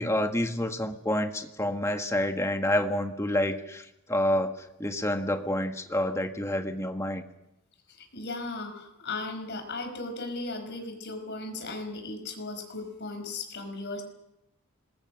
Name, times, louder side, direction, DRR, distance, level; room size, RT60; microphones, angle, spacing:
voice 1, 0.0-7.2, left 1 dB, 15° left, 6 dB, 1.6 m, -28 dB
voice 2, 7.9-14.0, left 2 dB, 50° left, 6 dB, 5.2 m, -36 dB
27.0 x 21.0 x 6.4 m, 0.88 s
head